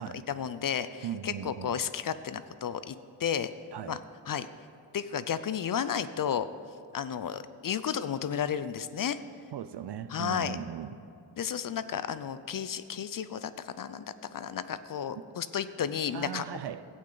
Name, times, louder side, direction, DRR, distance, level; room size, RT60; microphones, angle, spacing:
voice 1, 0.0-3.5 3.9-4.0 4.3-4.5 4.9-6.5 6.9-9.2 10.1-10.6 11.4-16.5, left 8 dB, 45° left, 0.5 m, -33 dB
voice 2, 1.0-1.8 3.7-4.0 9.5-11.0 16.1-16.8, right 9 dB, 55° right, 0.6 m, -38 dB
13.5 x 8.5 x 3.9 m
cardioid pair, 65°, 49 cm